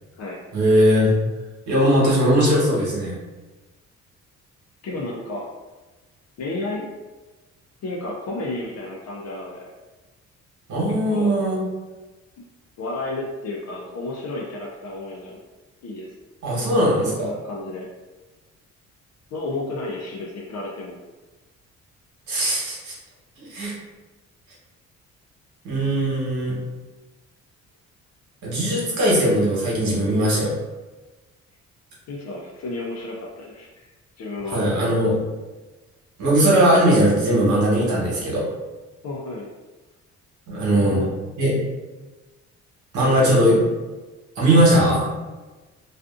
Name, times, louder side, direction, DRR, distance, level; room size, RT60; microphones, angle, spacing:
voice 1, 0.5-1.1 1.7-3.1 10.7-11.6 16.4-17.3 22.3-22.9 23.4-23.7 25.6-26.6 28.4-30.5 34.5-35.2 36.2-38.4 40.5-41.0 41.4-41.5 42.9-43.6 44.3-45.1, right 1 dB, 75° right, -5 dB, 1.2 m, -19 dB
voice 2, 4.8-5.5 6.4-6.9 7.8-9.7 10.9-11.4 12.8-15.4 15.8-16.1 16.5-16.9 17.2-17.9 19.3-21.0 32.1-33.9 34.2-34.6 39.0-39.5 40.6-41.1 43.0-43.6, left 2 dB, 60° left, -3 dB, 0.5 m, -32 dB
2.4 x 2.4 x 2.4 m, 1.2 s
cardioid pair, 90°, 30 cm